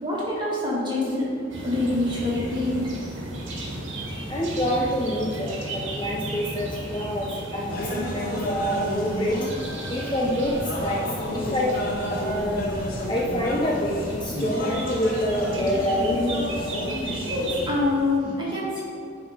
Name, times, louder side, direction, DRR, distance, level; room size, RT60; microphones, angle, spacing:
voice 1, 0.0-1.3 1.6-2.8 17.3-18.8, left 2 dB, 25° right, -6 dB, 1.7 m, -25 dB
sound 1, 1.5-17.7, right 1 dB, 70° right, 1.4 m, -34 dB
voice 2, 4.3-9.4 9.9-10.6 10.8-11.0 11.3-11.7 12.1-12.7 13.1-16.4, equal, 25° left, -2 dB, 0.5 m, -27 dB
sound 2, 7.7-18.2, left 1 dB, 45° left, 0.9 m, -31 dB
9.5 x 3.6 x 4.9 m, 2.5 s
head